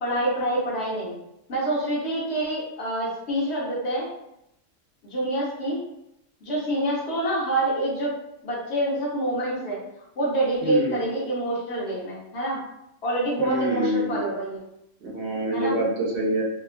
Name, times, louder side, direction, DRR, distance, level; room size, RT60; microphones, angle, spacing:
voice 1, 0.0-1.2 1.5-4.1 5.0-5.8 6.4-8.1 8.4-9.8 10.2-12.6 13.0-14.6 15.5-15.8, right 1 dB, 60° left, -5 dB, 1.0 m, -26 dB
voice 2, 10.6-11.0 13.4-14.2 15.0-16.4, equal, 65° right, -3 dB, 0.9 m, -26 dB
2.9 x 2.3 x 2.4 m, 0.83 s
omnidirectional pair, 1.3 m